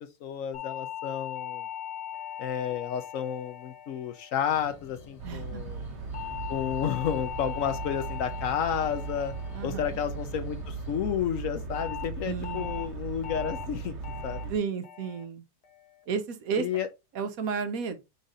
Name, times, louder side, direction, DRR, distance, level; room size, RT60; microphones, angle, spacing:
voice 1, 0.2-1.6 2.4-5.9 6.5-9.3 9.6-14.0 14.2-14.5 16.6-16.9, left 9 dB, 65° left, 0.9 m, -31 dB
sound 1, 0.5-5.0 6.1-10.6 11.7-12.0 12.4-12.8 13.2-13.6 14.0-14.4 14.8-15.2 15.6-16.0, left 11 dB, 90° left, 1.7 m, -40 dB
sound 2, 4.5-11.0, left 4 dB, 40° left, 0.5 m, -51 dB
sound 3, 5.2-14.6, right 4 dB, 55° right, 1.0 m, -37 dB
voice 2, 5.2-5.8 9.5-10.0 12.2-12.8 14.5-15.4 16.1-16.7 17.1-18.0, right 6 dB, 70° right, 1.1 m, -32 dB
5.0 x 4.0 x 2.6 m
omnidirectional pair, 1.6 m